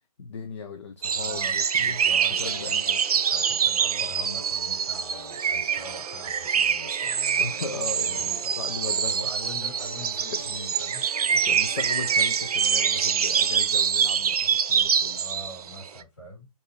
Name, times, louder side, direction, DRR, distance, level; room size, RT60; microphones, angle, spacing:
voice 1, 0.2-3.0 7.4-9.2 10.2-10.6 11.3-15.2, left 4 dB, 45° left, 0.5 m, -37 dB
sound 1, 1.0-15.9, right 7 dB, 70° right, 0.4 m, -25 dB
voice 2, 1.2-2.6 3.1-8.5 9.0-11.4 15.1-16.5, left 1 dB, 30° left, 2.4 m, -44 dB
sound 2, 1.9-13.6, right 2 dB, 25° right, 0.8 m, -44 dB
4.4 x 2.6 x 3.0 m
hypercardioid pair, 180°, 20 cm